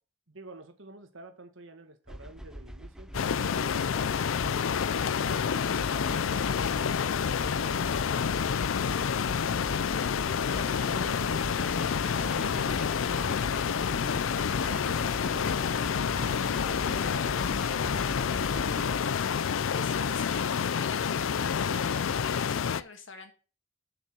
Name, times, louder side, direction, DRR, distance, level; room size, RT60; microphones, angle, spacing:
voice 1, 0.3-4.7 5.2-7.8 10.7-14.2 14.7-17.5, right 2 dB, 80° right, 7 dB, 1.6 m, -49 dB
sound 1, 2.1-19.0, equal, 5° right, 0.4 m, -42 dB
sound 2, 3.1-22.8, left 7 dB, 90° left, 0.4 m, -28 dB
Bowed string instrument, 10.9-16.7, left 1 dB, 50° left, 1.2 m, -49 dB
voice 2, 19.7-23.3, left 3 dB, 70° left, 7 dB, 1.7 m, -46 dB
6.9 x 5.4 x 6.1 m, 0.34 s
head